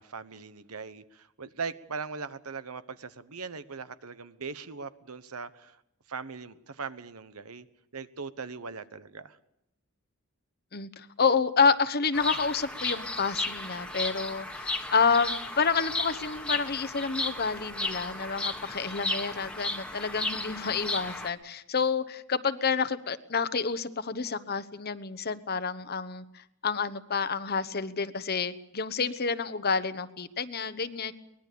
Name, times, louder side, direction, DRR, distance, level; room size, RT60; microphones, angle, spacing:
voice 1, 0.0-5.8 6.1-7.7 7.9-9.4, right 5 dB, 80° right, 13 dB, 1.2 m, -40 dB
voice 2, 10.7-31.1, left 5 dB, 45° left, 13 dB, 1.0 m, -29 dB
Bird vocalization bird call bird song, 12.1-21.3, left 2 dB, 5° left, 1.5 m, -34 dB
23.5 x 20.0 x 6.9 m, 0.82 s
head